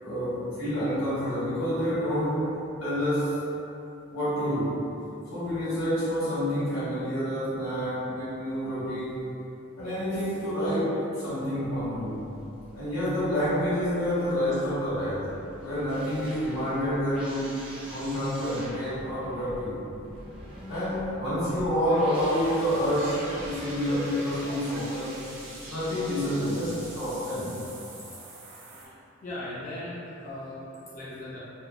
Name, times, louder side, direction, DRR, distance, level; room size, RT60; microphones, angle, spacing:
voice 1, 0.0-3.4 4.1-4.9 5.3-9.3 9.8-12.2 12.7-15.3 15.6-19.8 20.7-25.2 25.7-27.6, equal, 90° left, -11 dB, 1.3 m, -28 dB
sound 1, 11.6-27.1, equal, 25° right, 0.4 m, -45 dB
sound 2, 22.1-28.9, right 2 dB, 75° right, 0.6 m, -43 dB
voice 2, 28.9-31.4, left 1 dB, 40° left, -9 dB, 0.4 m, -39 dB
3.4 x 2.1 x 2.3 m, 2.7 s
head